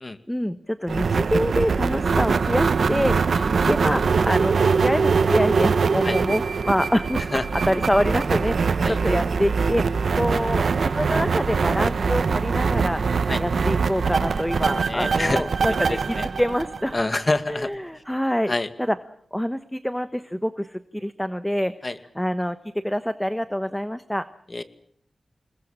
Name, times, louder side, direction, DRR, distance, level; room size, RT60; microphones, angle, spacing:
voice 1, 0.3-3.4 3.7-7.2 7.5-9.8 10.1-13.0 13.4-17.0 17.5-19.0 19.3-21.7 22.1-24.3, equal, 5° left, 11 dB, 1.2 m, -26 dB
sound 1, 0.9-17.4, right 5 dB, 80° right, 0.9 m, -23 dB
voice 2, 14.8-15.4 15.9-16.3 16.9-17.7 18.5-18.7 21.8-22.0 24.5-24.6, left 2 dB, 35° left, 10 dB, 2.2 m, -26 dB
27.5 x 21.0 x 7.6 m, 0.63 s
wide cardioid pair, 70°, 0 cm